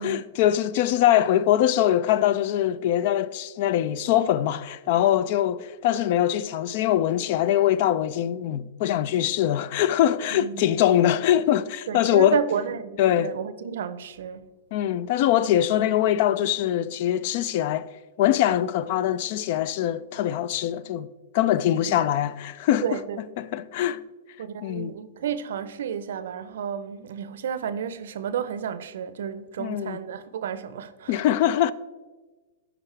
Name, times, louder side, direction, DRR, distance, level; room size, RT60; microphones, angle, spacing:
voice 1, 0.0-12.4 13.0-13.3 14.7-17.9 18.2-21.1 21.3-23.0 23.4-24.0 24.6-24.9 29.6-30.0 31.1-31.7, left 11 dB, 55° left, 0.3 m, -23 dB
voice 2, 10.4-10.8 11.9-14.4 21.7-22.0 22.8-23.2 24.4-31.2, right 8 dB, 75° right, 0.5 m, -31 dB
12.0 x 4.9 x 3.2 m
hypercardioid pair, 125°, 0 cm